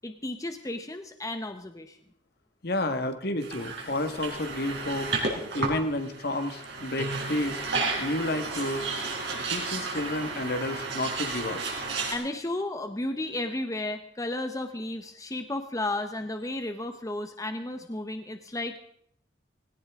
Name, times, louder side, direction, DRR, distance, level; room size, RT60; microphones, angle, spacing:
voice 1, 0.0-2.0 12.1-18.8, left 2 dB, 20° left, 7 dB, 0.8 m, -33 dB
voice 2, 2.6-5.1 5.5-7.6 8.0-8.9 9.3-11.6, left 1 dB, 60° left, 8 dB, 1.5 m, -30 dB
sound 1, 3.4-12.1, right 3 dB, 70° right, 4.6 m, -32 dB
19.0 x 17.5 x 3.6 m, 0.67 s
head